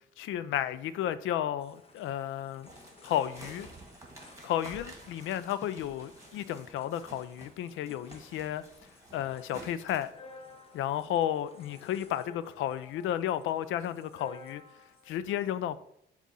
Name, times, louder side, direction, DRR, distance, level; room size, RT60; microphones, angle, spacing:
voice 1, 0.2-2.7 3.0-3.7 4.4-8.6 9.1-10.1 10.7-14.6 15.1-15.8, left 11 dB, 80° left, 0.4 m, -32 dB
sound 1, 1.6-15.2, left 3 dB, 30° left, 0.9 m, -55 dB
sound 2, 2.7-7.6 7.9-10.1, right 2 dB, 15° right, 1.6 m, -50 dB
7.3 x 2.5 x 5.5 m
cardioid pair, 90°, 20 cm